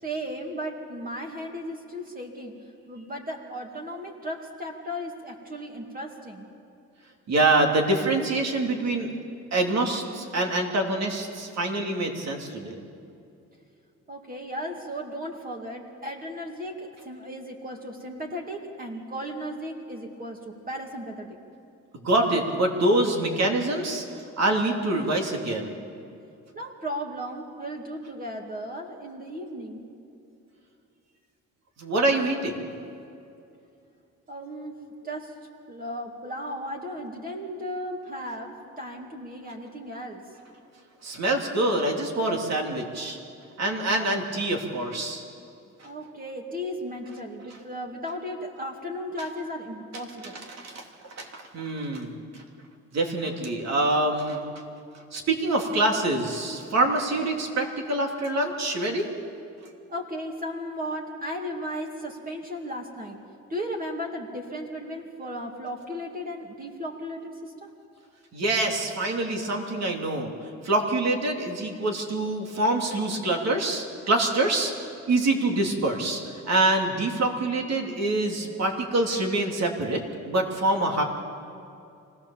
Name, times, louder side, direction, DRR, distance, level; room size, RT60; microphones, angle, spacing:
voice 1, 0.0-2.6 2.9-6.5 14.1-21.4 26.5-29.8 34.3-35.4 35.7-40.2 45.8-50.4 59.9-63.2 63.5-67.7, equal, 30° right, 1 dB, 2.3 m, -35 dB
voice 2, 7.3-9.1 9.5-12.8 22.0-24.0 24.4-25.7 31.8-32.6 41.0-43.2 43.6-45.2 50.5-52.4 52.9-54.4 55.1-59.1 68.3-70.3 70.6-74.7 75.1-80.0 80.3-81.0, right 2 dB, 60° right, 2 dB, 3.0 m, -25 dB
25.0 x 17.5 x 7.2 m, 2.6 s
cardioid pair, 90°, 30 cm